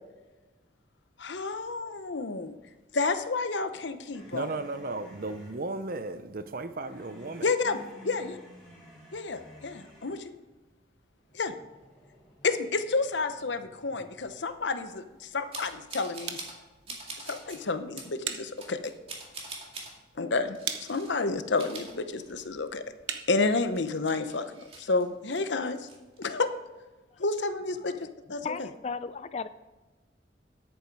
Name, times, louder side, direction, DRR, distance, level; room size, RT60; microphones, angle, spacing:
voice 1, 1.2-2.5 2.9-4.5 7.4-7.8 8.0-8.4 9.1-10.3 11.3-11.5 12.4-16.4 17.2-18.9 20.2-22.8 23.3-25.9 26.2-26.5 27.2-27.9 28.3-28.5, left 3 dB, 75° left, 10 dB, 0.8 m, -30 dB
sound 1, 4.1-5.6 6.8-10.3 11.2-14.2, equal, 5° left, 3.9 m, -53 dB
voice 2, 4.3-7.5, right 2 dB, 50° right, 11 dB, 0.7 m, -35 dB
sound 2, 14.2-24.0, right 8 dB, 75° right, 1.0 m, -44 dB
sound 3, 15.5-16.6 16.9-17.6 18.0-18.1 18.6-19.9 20.5-21.2 21.5-22.7 23.0-23.1 23.5-25.4 25.8-26.3, right 3 dB, 30° right, 2.1 m, -44 dB
voice 3, 27.8-28.1 28.4-29.5, left 5 dB, 35° left, 14 dB, 0.4 m, -36 dB
10.5 x 9.0 x 4.7 m, 1.2 s
head